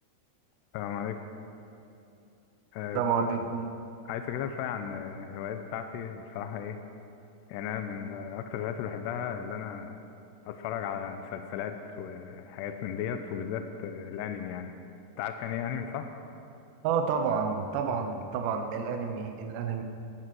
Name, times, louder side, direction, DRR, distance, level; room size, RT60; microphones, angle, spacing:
voice 1, 0.7-1.2 2.7-3.3 4.1-6.8 7.5-10.0 10.5-14.7 15.2-16.1, left 8 dB, 80° left, 7 dB, 2.5 m, -35 dB
voice 2, 2.9-3.7 16.8-19.8, right 6 dB, 75° right, 5 dB, 2.8 m, -29 dB
14.5 x 13.0 x 6.2 m, 2.6 s
omnidirectional pair, 5.5 m